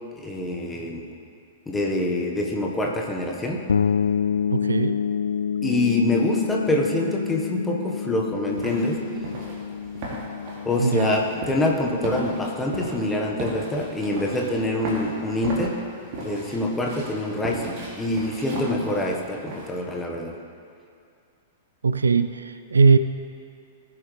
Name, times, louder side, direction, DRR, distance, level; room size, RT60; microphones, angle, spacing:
voice 1, 0.2-1.1 1.7-3.6 5.6-9.0 10.6-15.8 16.2-20.3, left 1 dB, 10° left, 0 dB, 1.4 m, -25 dB
sound 1, 3.7-13.3, left 7 dB, 70° left, 0.3 m, -28 dB
voice 2, 4.5-5.0 10.8-11.2 21.8-23.0, right 4 dB, 70° right, 11 dB, 0.4 m, -20 dB
sound 2, 8.5-19.7, right 2 dB, 40° right, 2.7 m, -36 dB
18.5 x 7.7 x 3.4 m, 2.4 s
figure-of-eight pair, 100°, 0 cm